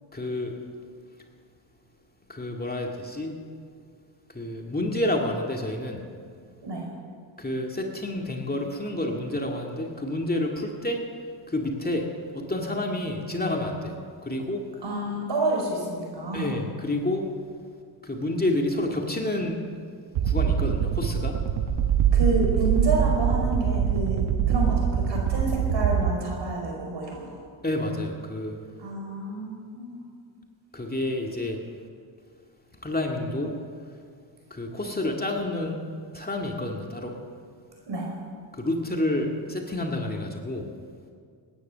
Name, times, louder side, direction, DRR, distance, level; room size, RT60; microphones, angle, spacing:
voice 1, 0.1-0.5 2.3-3.4 4.3-6.0 7.4-11.0 11.5-12.1 12.3-14.6 16.3-17.3 18.0-19.6 20.2-21.4 27.6-28.5 30.7-31.6 32.8-33.6 34.5-35.8 36.1-37.2 38.5-40.7, left 1 dB, 20° left, 1 dB, 2.2 m, -29 dB
voice 2, 14.8-16.5 22.1-24.2 24.5-27.4 28.8-30.0 37.9-38.1, right 2 dB, 60° right, 0 dB, 5.1 m, -29 dB
sound 1, 20.1-26.1, right 9 dB, 80° right, 1.1 m, -23 dB
19.0 x 10.0 x 6.8 m, 2.1 s
cardioid pair, 65°, 49 cm